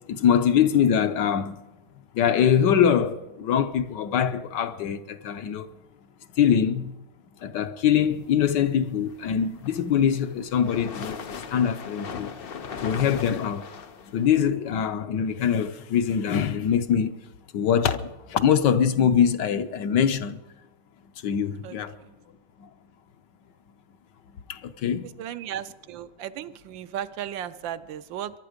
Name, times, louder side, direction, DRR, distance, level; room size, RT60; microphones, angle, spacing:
voice 1, 0.1-1.6 2.1-5.7 6.4-7.0 7.4-12.3 12.8-13.7 14.1-17.2 17.5-20.4 21.2-22.0 22.6-22.7 24.3-25.1, left 8 dB, 70° left, 1.3 m, -23 dB
sound 1, 9.4-14.5, left 6 dB, 90° left, 0.5 m, -38 dB
voice 2, 21.6-22.1 25.2-28.3, right 10 dB, 75° right, 1.4 m, -35 dB
23.0 x 11.5 x 5.1 m
omnidirectional pair, 2.1 m